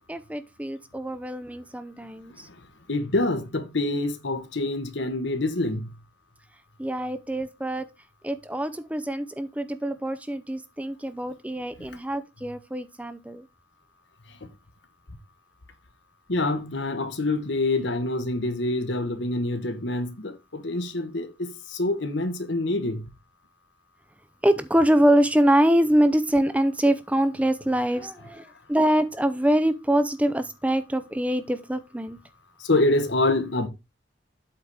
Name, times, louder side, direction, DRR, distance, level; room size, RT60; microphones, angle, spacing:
voice 1, 0.0-2.5 6.8-7.9 8.2-13.4 24.4-32.2, right 1 dB, 10° right, 0.6 m, -24 dB
voice 2, 2.9-6.0 11.8-11.9 14.4-14.5 16.3-23.1 32.6-33.7, left 2 dB, 80° left, 1.3 m, -26 dB
8.2 x 4.2 x 4.8 m
head